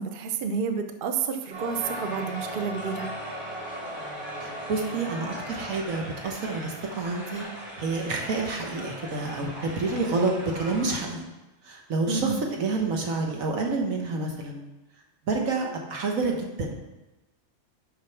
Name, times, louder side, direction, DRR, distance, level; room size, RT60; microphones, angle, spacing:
voice 1, 0.0-3.1 12.1-12.4, right 6 dB, 50° right, 6 dB, 0.7 m, -30 dB
Crowd, 1.5-11.0, right 1 dB, 25° right, 2.6 m, -38 dB
voice 2, 4.4-7.4 7.8-11.2 11.7-14.6 15.3-16.7, right 3 dB, 75° right, 1 dB, 1.6 m, -28 dB
6.5 x 5.2 x 5.8 m, 1.1 s
omnidirectional pair, 1.4 m